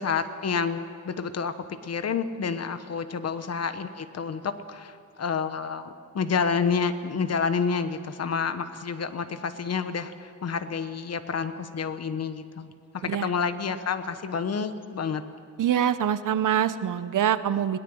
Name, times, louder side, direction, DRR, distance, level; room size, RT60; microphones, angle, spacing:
voice 1, 0.0-15.2, left 5 dB, 55° left, 10 dB, 1.1 m, -29 dB
voice 2, 15.6-17.8, right 10 dB, 80° right, 13 dB, 0.9 m, -24 dB
21.5 x 18.0 x 7.9 m, 2.5 s
wide cardioid pair, 170°, 31 cm